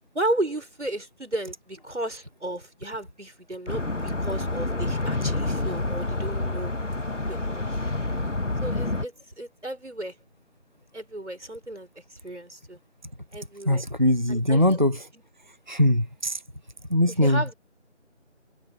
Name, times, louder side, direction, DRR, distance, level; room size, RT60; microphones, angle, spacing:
voice 1, 0.1-6.7 7.3-7.7 8.6-10.1 10.9-12.8 13.3-13.9 14.3-14.8 17.2-17.5, right 1 dB, 70° right, 4.9 m, -33 dB
sound 1, 3.7-9.1, left 2 dB, 85° left, 1.7 m, -28 dB
voice 2, 13.7-15.1 15.7-16.4 16.9-17.4, left 1 dB, 40° right, 0.6 m, -21 dB
figure-of-eight pair, 175°, 36 cm